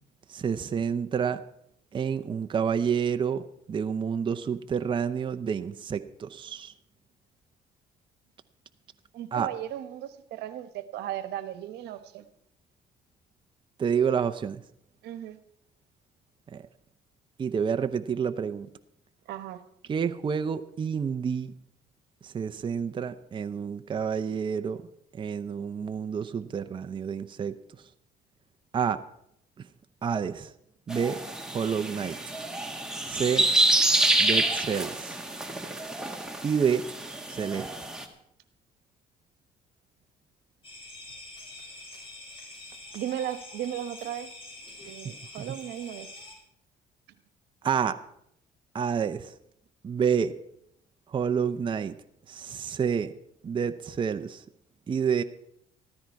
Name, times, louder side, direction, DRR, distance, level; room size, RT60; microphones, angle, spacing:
voice 1, 0.3-1.4 1.9-6.7 9.3-9.5 13.8-14.6 16.5-16.6 17.4-18.7 19.9-21.5 22.2-24.8 25.2-27.6 28.7-29.0 30.0-30.5 30.9-31.2 31.5-32.2 33.1-33.5 34.2-35.1 36.4-36.8 37.3-37.7 47.6-48.0 48.7-49.3 49.8-50.3 51.1-51.9 52.3-53.1 53.4-54.4 54.9-55.2, right 7 dB, 30° right, 9 dB, 0.6 m, -28 dB
voice 2, 9.1-12.2 15.0-15.4 19.3-19.6 42.9-44.3 44.9-46.1, right 11 dB, 80° right, 11 dB, 1.1 m, -36 dB
sound 1, 30.9-38.0, right 2 dB, 5° right, 1.6 m, -27 dB
sound 2, 40.6-46.3, left 2 dB, 30° left, 5.4 m, -45 dB
14.0 x 13.0 x 4.6 m, 0.73 s
cardioid pair, 110°, 17 cm